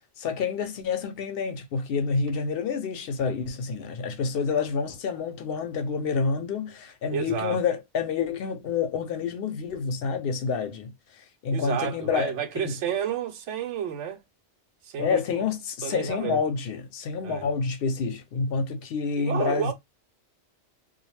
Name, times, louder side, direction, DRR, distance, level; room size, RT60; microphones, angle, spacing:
voice 1, 0.2-10.9 11.4-12.7 15.0-19.7, left 5 dB, 65° left, 0.7 m, -28 dB
voice 2, 7.1-7.6 11.5-14.2 14.8-15.4 15.8-16.4 17.2-17.5 19.2-19.7, right 8 dB, 85° right, 0.9 m, -31 dB
2.3 x 2.1 x 3.0 m
omnidirectional pair, 1.2 m